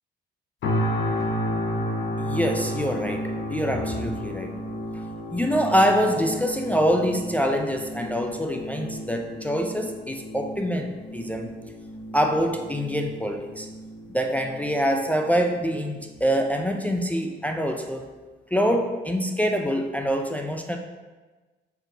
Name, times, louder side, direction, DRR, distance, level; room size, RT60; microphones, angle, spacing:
sound 1, 0.6-15.6 16.1-16.3, equal, 65° left, 0.7 m, -32 dB
voice 1, 2.2-4.5 5.3-11.5 12.1-13.7 14.1-18.1 18.5-20.8, equal, 5° left, 3 dB, 0.3 m, -25 dB
4.5 x 3.8 x 2.7 m, 1.3 s
cardioid pair, 90°, 20 cm